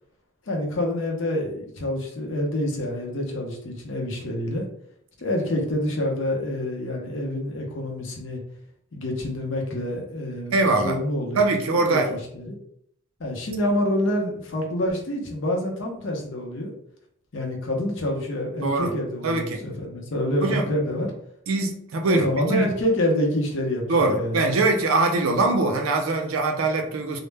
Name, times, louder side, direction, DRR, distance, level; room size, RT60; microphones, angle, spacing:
voice 1, 0.5-4.6 5.2-8.4 8.9-11.4 11.9-12.0 12.3-12.6 13.2-16.7 17.3-21.1 22.0-23.8 24.1-24.4, left 1 dB, 60° left, 0 dB, 0.6 m, -27 dB
voice 2, 10.5-11.0 11.4-12.1 18.6-18.9 19.2-19.6 20.4-20.7 21.5-22.3 22.5-22.7 23.9-27.2, right 3 dB, 75° right, 4 dB, 0.4 m, -22 dB
2.0 x 2.0 x 3.2 m, 0.70 s
head